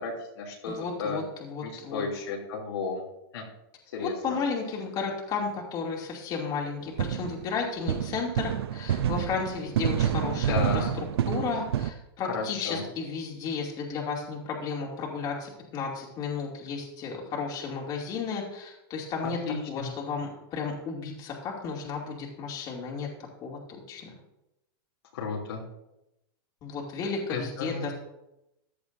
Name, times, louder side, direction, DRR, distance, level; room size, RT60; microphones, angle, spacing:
voice 1, 0.0-1.2 1.6-3.0 3.3-3.5 3.9-4.4 10.5-11.0 12.3-12.8 19.2-19.9 25.1-25.6 27.3-27.9, left 4 dB, 85° left, -3 dB, 3.0 m, -33 dB
voice 2, 0.7-2.0 4.0-19.4 19.7-23.1 23.4-24.1 26.6-27.9, left 5 dB, 30° left, -1 dB, 2.5 m, -33 dB
sound 1, 7.0-7.5 7.9-11.9, right 10 dB, 85° right, 0.6 m, -28 dB
15.0 x 10.5 x 2.7 m, 0.88 s
supercardioid pair, 145°, 13 cm